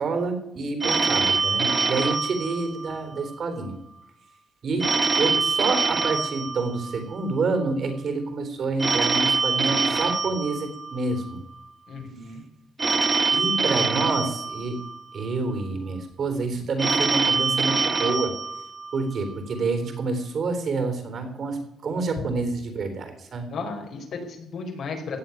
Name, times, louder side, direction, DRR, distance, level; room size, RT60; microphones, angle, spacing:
voice 1, 0.0-3.8 4.6-4.9 5.2-11.4 13.3-14.8 15.1-18.3 18.9-23.5, right 3 dB, 50° right, 7 dB, 3.8 m, -28 dB
Telephone, 0.8-3.3 4.8-7.3 8.8-11.3 12.8-15.3 16.8-19.3, right 4 dB, 25° right, 0.6 m, -25 dB
voice 2, 11.9-12.4 23.5-25.2, left 4 dB, 60° left, 3 dB, 4.6 m, -34 dB
16.5 x 7.3 x 9.7 m, 0.79 s
cardioid pair, 115°, 0 cm